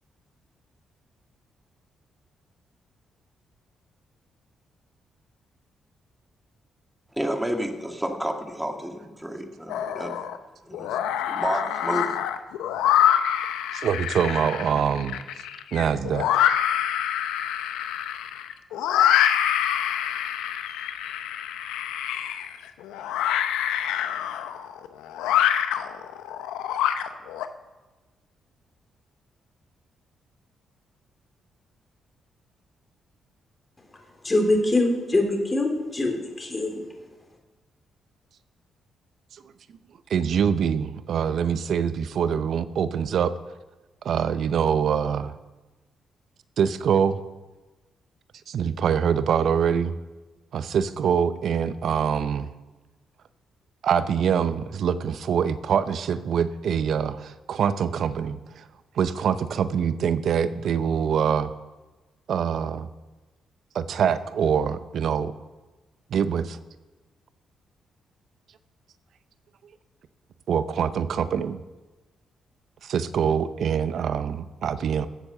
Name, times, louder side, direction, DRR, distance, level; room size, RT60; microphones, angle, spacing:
voice 1, 7.1-10.2 10.6-10.9 11.3-12.1, equal, 5° right, 4 dB, 2.0 m, -30 dB
sound 1, 9.7-10.4 10.7-27.5, left 10 dB, 85° left, 0.7 m, -25 dB
voice 2, 13.7-15.2 15.7-16.3 40.1-43.3 44.0-45.3 46.6-47.2 48.5-49.9 50.5-52.5 53.8-58.6 59.0-61.5 62.3-62.9 63.7-65.3 66.1-66.6 70.5-71.6 72.8-75.1, right 7 dB, 65° right, 14 dB, 0.7 m, -24 dB
voice 3, 34.2-36.8, left 2 dB, 25° left, 2 dB, 3.4 m, -23 dB
14.0 x 7.8 x 6.8 m, 1.2 s
supercardioid pair, 55°, 0 cm